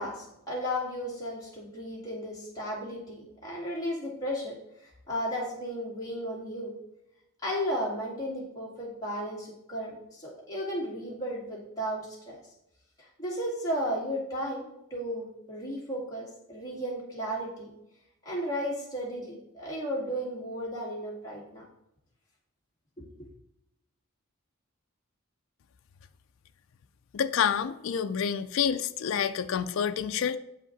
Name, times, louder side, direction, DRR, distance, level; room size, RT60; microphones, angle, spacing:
voice 1, 0.0-6.7 7.4-12.4 13.0-17.7 18.2-21.6 23.0-23.1, equal, 15° left, -7 dB, 2.5 m, -34 dB
voice 2, 27.1-30.4, left 7 dB, 65° left, 10 dB, 0.4 m, -28 dB
8.0 x 5.0 x 3.9 m, 0.84 s
head